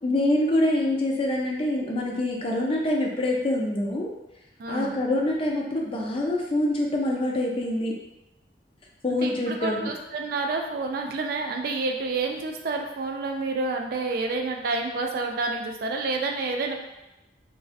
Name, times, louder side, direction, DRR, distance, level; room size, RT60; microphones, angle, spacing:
voice 1, 0.0-4.1 4.7-7.9 9.0-9.9, left 1 dB, 30° left, -1 dB, 0.4 m, -25 dB
voice 2, 4.6-4.9 9.2-16.8, right 3 dB, 55° right, 3 dB, 0.3 m, -29 dB
2.4 x 2.2 x 2.4 m, 0.96 s
head